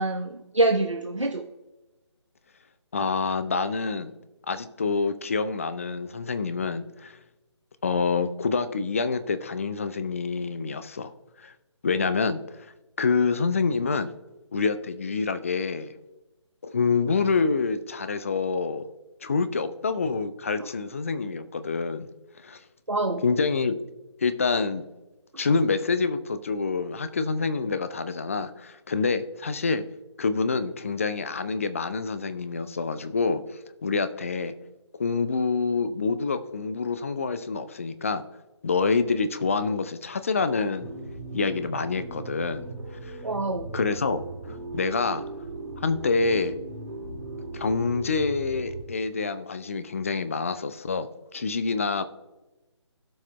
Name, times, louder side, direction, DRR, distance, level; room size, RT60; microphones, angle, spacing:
voice 1, 0.0-1.4 22.9-23.2 43.2-43.7, right 2 dB, 85° right, 1 dB, 0.9 m, -25 dB
voice 2, 2.9-4.1 4.5-7.2 7.8-11.1 11.4-11.5 11.8-12.7 13.0-14.1 14.5-15.9 16.6-18.9 19.2-22.1 22.4-22.6 23.2-23.8 24.2-24.9 25.4-29.8 30.2-33.4 33.8-34.5 35.0-38.2 38.6-40.9 41.3-42.7 43.0-43.2 43.7-44.2 44.5-45.2 45.8-46.6 47.5-51.1 51.3-52.0, left 4 dB, 30° left, 11 dB, 0.5 m, -27 dB
sound 1, 40.8-48.8, right 2 dB, 15° right, 2.1 m, -38 dB
17.0 x 5.7 x 2.2 m, 1.1 s
figure-of-eight pair, 150°, 15 cm